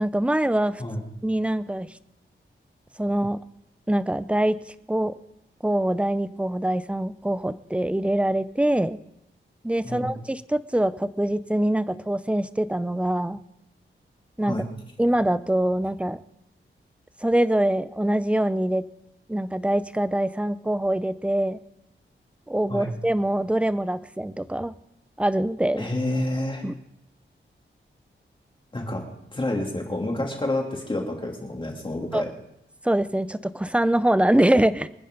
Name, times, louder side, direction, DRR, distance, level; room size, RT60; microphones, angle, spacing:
voice 1, 0.0-0.8 1.2-1.9 3.0-3.4 3.9-4.6 4.9-5.1 5.6-9.0 9.6-13.4 14.4-14.6 15.0-16.2 17.2-18.8 19.3-21.6 22.5-24.7 25.2-25.9 26.6-26.7 32.1-32.2 32.8-34.9, right 1 dB, 5° right, 14 dB, 0.5 m, -24 dB
voice 2, 25.8-26.6 28.7-29.0 29.3-32.3, left 1 dB, 25° left, 0 dB, 3.1 m, -28 dB
25.5 x 10.0 x 3.9 m, 0.83 s
wide cardioid pair, 125°, 20 cm